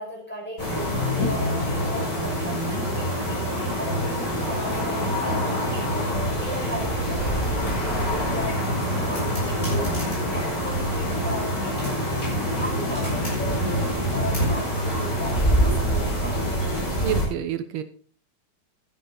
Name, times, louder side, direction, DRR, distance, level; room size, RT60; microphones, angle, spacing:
voice 1, 0.0-3.3 3.8-12.2 12.6-16.8, equal, 5° left, -2 dB, 5.0 m, -36 dB
sound 1, 0.6-17.2, equal, 35° left, 7.3 m, -25 dB
voice 2, 17.0-17.8, right 9 dB, 85° right, 10 dB, 1.8 m, -28 dB
12.5 x 11.0 x 4.0 m, 0.42 s
omnidirectional pair, 2.3 m